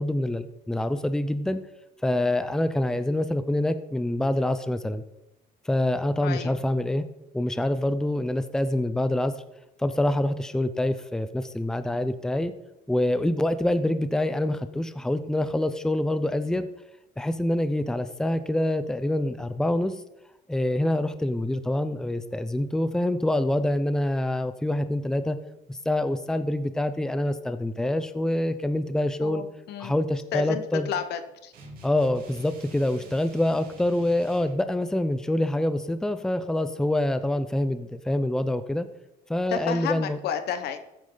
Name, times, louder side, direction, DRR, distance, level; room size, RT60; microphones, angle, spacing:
voice 1, 0.0-1.6 2.0-5.0 5.7-7.0 7.3-9.3 9.8-12.5 12.9-16.7 17.2-19.9 20.5-25.4 25.7-29.4 29.8-30.9 31.8-38.9 39.3-40.2, left 1 dB, 5° left, 11 dB, 0.6 m, -26 dB
voice 2, 6.2-6.6 29.2-30.0 30.3-30.6 30.9-31.5 39.5-40.8, left 8 dB, 75° left, 9 dB, 1.2 m, -31 dB
sound 1, 31.5-34.6, right 1 dB, 60° right, 2.9 m, -47 dB
14.5 x 8.6 x 4.0 m, 0.90 s
cardioid pair, 110°, 17 cm